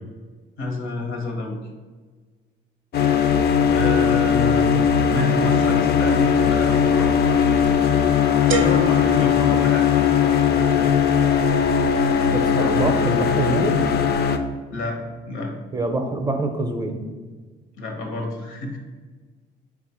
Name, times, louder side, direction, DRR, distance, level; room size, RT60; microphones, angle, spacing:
voice 1, 0.6-1.6 3.7-4.7 5.1-7.7 8.5-10.9 14.7-15.0 15.2-15.5 17.8-18.8, left 2 dB, 80° left, 2 dB, 0.9 m, -29 dB
sound 1, 2.9-14.4, left 7 dB, 55° left, 0.4 m, -19 dB
sound 2, 8.5-10.4, right 7 dB, 85° right, 0.4 m, -30 dB
voice 2, 12.3-13.7 15.7-17.0, right 2 dB, 20° right, 5 dB, 0.5 m, -24 dB
4.2 x 2.4 x 4.2 m, 1.4 s
cardioid pair, 90°, 20 cm